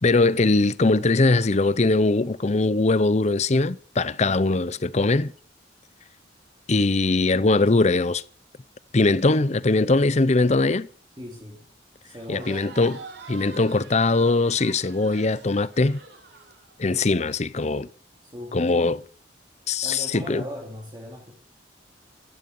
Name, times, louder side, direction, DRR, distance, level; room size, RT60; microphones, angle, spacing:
voice 1, 0.0-5.3 6.7-8.2 8.9-10.9 12.3-13.0 13.3-16.0 16.8-17.9 18.5-19.0 19.7-20.4, left 3 dB, 40° left, 0.6 m, -21 dB
voice 2, 11.2-11.7 12.0-12.7 18.2-18.7 19.8-21.3, equal, 25° right, 3.0 m, -39 dB
Crowd, 12.2-17.2, right 5 dB, 65° right, 3.7 m, -45 dB
15.0 x 13.0 x 5.5 m
head